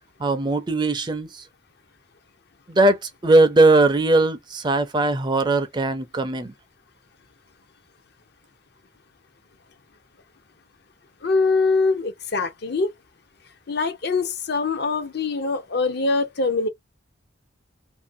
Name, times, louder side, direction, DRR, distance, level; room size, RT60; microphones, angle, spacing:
voice 1, 0.2-1.4 2.7-6.5, right 2 dB, 25° right, 0.4 m, -19 dB
voice 2, 11.2-12.9 13.7-16.7, left 3 dB, 55° left, 0.6 m, -23 dB
2.6 x 2.6 x 2.6 m
head